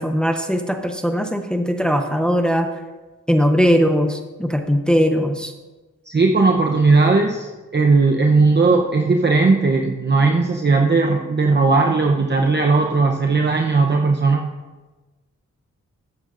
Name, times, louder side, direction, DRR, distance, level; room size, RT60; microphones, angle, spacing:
voice 1, 0.0-2.7 3.3-5.5, equal, 5° left, 6 dB, 0.8 m, -19 dB
voice 2, 6.1-14.5, right 3 dB, 35° right, 2 dB, 0.8 m, -17 dB
13.0 x 8.9 x 2.6 m, 1.2 s
cardioid pair, 50°, 32 cm